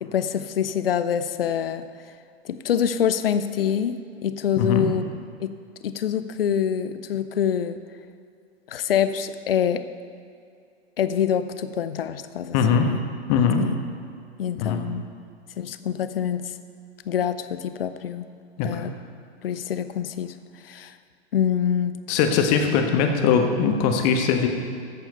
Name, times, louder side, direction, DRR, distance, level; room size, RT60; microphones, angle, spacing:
voice 1, 0.0-1.8 2.4-5.0 5.4-5.6 5.8-7.8 8.7-9.8 11.0-13.0 13.6-13.8 14.4-15.0 15.6-16.4 17.1-18.3 18.6-18.9 19.4-20.3 20.6-20.9 21.3-21.9, left 8 dB, 60° left, 12 dB, 0.7 m, -25 dB
voice 2, 4.6-4.9 12.5-12.9 13.3-13.6 14.6-14.8 18.6-18.9 22.1-24.5, left 6 dB, 40° left, 4 dB, 1.3 m, -21 dB
13.5 x 8.1 x 4.3 m, 2.4 s
figure-of-eight pair, 95°, 32 cm